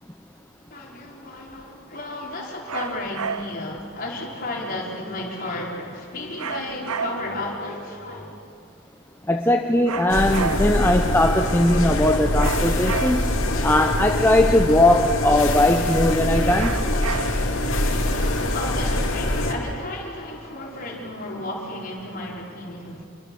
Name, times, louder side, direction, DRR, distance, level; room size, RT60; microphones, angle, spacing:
voice 1, 0.7-8.3 11.4-11.5 17.8-23.1, left 1 dB, 40° left, -2 dB, 4.5 m, -33 dB
sound 1, 2.7-3.7 6.4-7.5 9.9-10.9 12.4-13.5 16.6-17.6, right 6 dB, 80° right, 0.8 m, -32 dB
voice 2, 9.3-13.2 13.6-16.7, left 1 dB, 10° left, 3 dB, 0.8 m, -19 dB
sound 2, 10.1-19.5, left 1 dB, 60° left, 3.0 m, -24 dB
26.5 x 22.5 x 7.0 m, 2.4 s
head